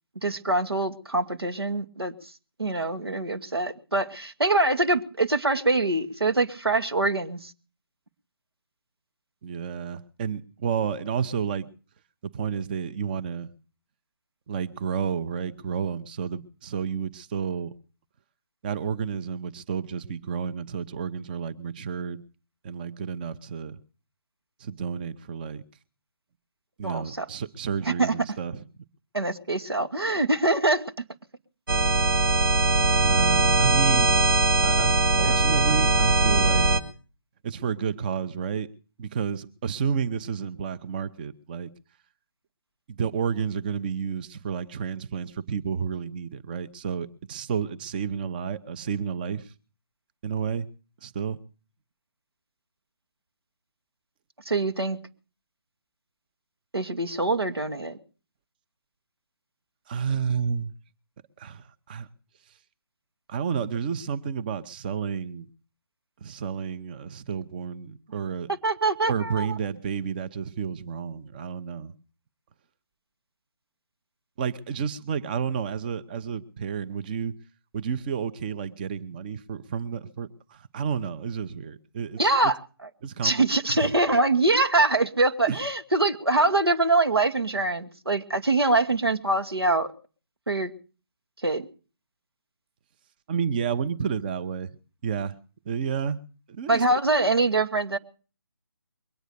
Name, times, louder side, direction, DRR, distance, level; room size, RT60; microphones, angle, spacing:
voice 1, 0.2-2.1 2.6-7.5 26.8-27.2 27.8-28.1 29.1-30.8 35.2-35.4 54.4-55.0 56.7-58.0 68.6-69.5 82.2-82.6 83.2-89.9 90.5-90.7 91.4-91.7 96.7-98.0, right 2 dB, 90° right, 1.5 m, -24 dB
voice 2, 9.4-11.7 12.3-13.5 14.5-17.7 18.6-22.2 22.6-23.8 24.6-25.6 26.8-28.6 33.0-34.2 34.6-36.7 37.4-38.7 39.0-41.7 42.9-49.5 50.2-50.7 51.0-51.4 59.9-60.7 61.4-62.1 63.3-65.5 66.2-68.5 69.1-71.9 74.4-77.3 77.7-82.5 83.0-83.3 83.7-83.9 85.5-85.6 93.3-94.8 95.0-95.3 95.7-96.2 96.5-96.8, right 6 dB, 25° right, 0.7 m, -31 dB
sound 1, 31.7-36.8, right 2 dB, 60° right, 1.7 m, -21 dB
22.5 x 9.1 x 6.7 m
figure-of-eight pair, 150°, 13 cm